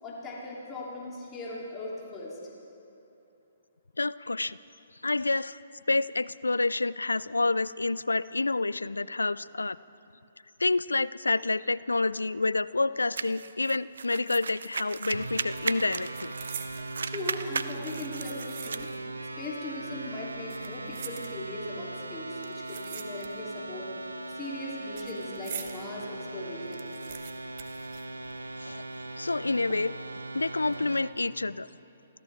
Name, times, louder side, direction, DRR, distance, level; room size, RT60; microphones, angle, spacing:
voice 1, 0.0-2.4 17.0-18.9 19.4-23.9 24.3-26.8, left 2 dB, 20° left, -5 dB, 3.0 m, -39 dB
voice 2, 4.0-4.6 5.0-5.6 5.9-9.8 10.6-16.3 28.6-28.8 29.2-29.9 30.3-31.7, left 3 dB, 85° left, 18 dB, 0.3 m, -28 dB
sound 1, 13.2-16.6 16.9-18.9, right 5 dB, 70° right, 0.5 m, -36 dB
sound 2, 14.9-15.2 15.5-16.9 17.7-19.1 19.4-19.5 20.3-21.7 22.4-23.6 23.9-25.8 26.2-26.3 26.5-28.6 28.9-29.0 29.7-30.1 30.5-30.8, right 8 dB, 45° right, 1.2 m, -44 dB
sound 3, 15.1-31.2, right 2 dB, 90° right, 0.8 m, -39 dB
29.0 x 14.0 x 3.5 m, 2.8 s
figure-of-eight pair, 130°, 0 cm